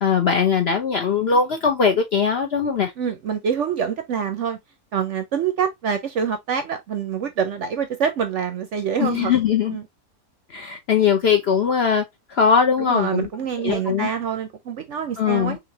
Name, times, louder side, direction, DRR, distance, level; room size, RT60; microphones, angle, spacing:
voice 1, 0.0-2.9 9.0-9.8 10.5-12.0 12.3-13.3 13.6-14.1 15.2-15.6, left 6 dB, 60° left, 0.7 m, -20 dB
voice 2, 3.0-4.6 4.9-9.3 9.7-9.8 12.9-15.6, right 7 dB, 65° right, 0.8 m, -25 dB
5.9 x 2.6 x 2.7 m
omnidirectional pair, 1.7 m